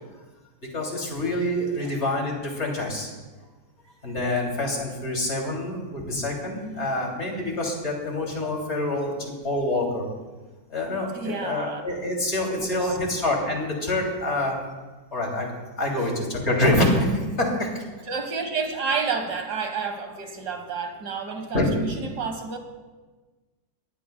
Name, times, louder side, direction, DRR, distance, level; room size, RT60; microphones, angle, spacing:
voice 1, 0.6-3.1 4.0-10.0 10.7-14.6 15.1-15.5 15.8-17.7 21.5-21.7, left 1 dB, 35° left, 0 dB, 3.2 m, -26 dB
voice 2, 11.1-11.8 12.6-13.0 16.0-16.1 18.0-22.6, right 5 dB, 60° right, 5 dB, 2.1 m, -30 dB
23.0 x 15.5 x 2.3 m, 1.3 s
omnidirectional pair, 2.0 m